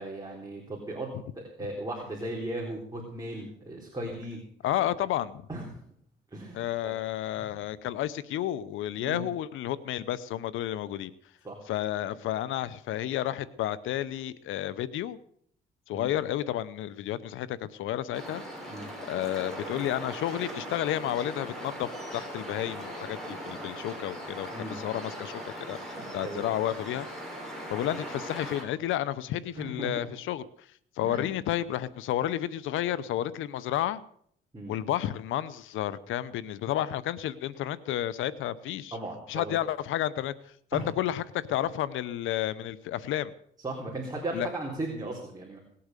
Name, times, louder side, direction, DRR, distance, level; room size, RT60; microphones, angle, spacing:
voice 1, 0.0-4.4 5.5-5.8 6.3-7.0 7.3-7.5 9.0-9.3 11.4-11.6 15.9-16.1 18.7-18.9 24.5-24.8 26.0-26.5 29.6-30.1 31.0-31.2 34.5-34.7 38.9-39.6 40.7-40.8 43.6-45.6, right 1 dB, 20° right, -2 dB, 3.8 m, -37 dB
voice 2, 4.6-5.5 6.5-11.1 11.7-15.2 15.9-18.4 19.1-27.1 27.7-30.7 31.0-34.0 34.7-39.0 39.3-43.3 44.3-44.5, left 12 dB, 85° left, 18 dB, 0.7 m, -31 dB
sound 1, 18.1-28.6, equal, ahead, 5.9 m, -39 dB
18.5 x 8.6 x 6.7 m, 0.64 s
cardioid pair, 90°, 20 cm